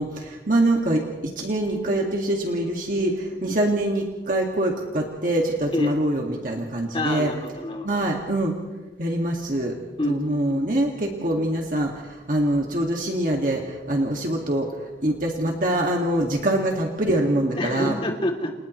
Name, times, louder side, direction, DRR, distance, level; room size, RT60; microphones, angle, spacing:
voice 1, 0.0-7.3 7.8-8.6 9.0-9.8 10.1-18.0, right 1 dB, 50° right, 0 dB, 2.1 m, -24 dB
voice 2, 6.9-8.1 10.0-10.6 17.5-18.5, left 1 dB, 30° left, 2 dB, 2.9 m, -28 dB
30.0 x 29.0 x 3.2 m, 1.2 s
head